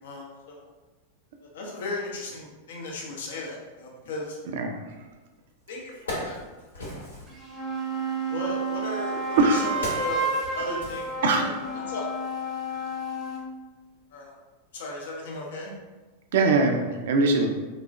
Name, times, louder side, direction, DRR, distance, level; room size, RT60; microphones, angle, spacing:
voice 1, 0.0-0.6 1.5-4.4 5.7-6.4 6.7-6.8 8.3-11.1 11.4-12.1 14.1-14.3 14.7-15.7, left 2 dB, 60° left, -2 dB, 0.6 m, -36 dB
voice 2, 4.5-4.9 9.4-9.8 11.2-11.7 16.3-17.6, right 3 dB, 55° right, 4 dB, 0.4 m, -22 dB
Wood, 5.2-5.3 5.8-7.4 8.4-11.7 12.0-12.2, left 1 dB, 75° left, 1.0 m, -38 dB
sound 1, 7.3-13.5, right 2 dB, 10° right, 0.6 m, -31 dB
3.2 x 2.2 x 2.4 m, 1.2 s
figure-of-eight pair, 90°, 0 cm